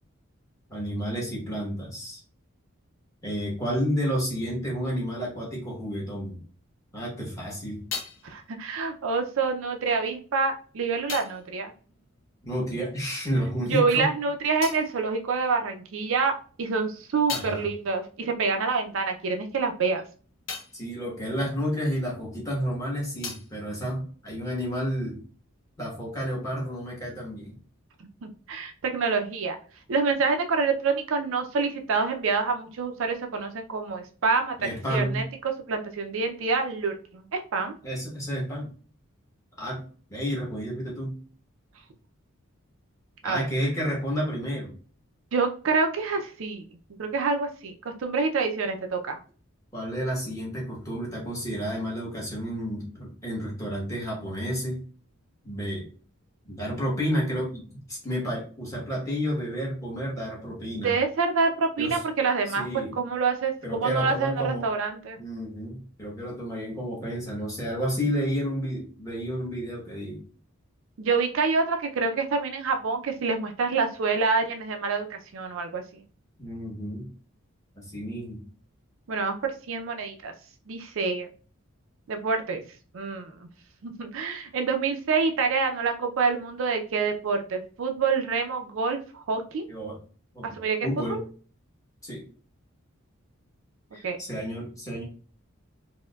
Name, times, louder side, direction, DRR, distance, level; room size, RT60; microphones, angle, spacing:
voice 1, 0.7-2.2 3.2-6.4 6.9-7.8 12.4-14.1 17.3-17.7 20.7-25.2 25.8-27.6 34.6-35.2 37.8-38.7 39.6-39.8 40.1-41.2 43.2-44.7 49.7-54.8 55.4-55.9 56.4-60.9 61.8-62.0 62.5-63.0 63.6-64.7 65.2-70.2 76.4-77.1 77.8-78.4 89.7-90.0 90.3-90.5 90.8-91.3 92.0-92.2 93.9-95.0, equal, 15° left, -4 dB, 1.1 m, -31 dB
sound 1, 7.2-13.1 13.3-16.0 16.4-22.5 22.7-24.8, left 5 dB, 60° left, 0.7 m, -43 dB
voice 2, 8.2-11.7 13.7-16.3 16.6-20.0 28.2-29.6 29.9-34.6 34.9-35.2 35.7-37.7 43.2-43.5 45.3-46.6 47.0-49.2 60.8-65.2 71.0-75.8 79.1-80.3 80.7-81.3 82.1-82.6 82.9-83.4 83.8-89.6 90.4-90.8 91.1-91.2 94.0-94.2, right 4 dB, 65° right, 5 dB, 0.4 m, -27 dB
4.3 x 2.1 x 2.2 m, 0.40 s
head